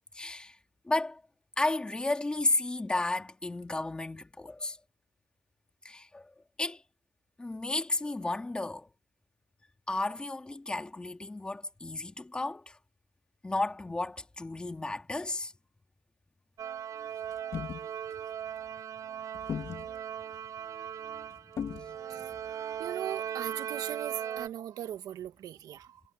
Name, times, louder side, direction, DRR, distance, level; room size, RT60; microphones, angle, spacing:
voice 1, 0.1-0.6 0.8-1.2 1.6-4.8 5.8-6.3 6.6-6.8 7.4-8.9 9.9-12.8 13.4-15.5 22.2-22.3, left 2 dB, 15° left, 2.3 m, -33 dB
sound 1, 16.6-24.5, right 9 dB, 65° right, 7.0 m, -38 dB
sound 2, 17.3-17.9 19.3-20.0 21.6-22.0, left 8 dB, 55° left, 2.3 m, -37 dB
voice 2, 22.8-26.0, right 11 dB, 80° right, 1.5 m, -39 dB
cardioid pair, 125°, 6 cm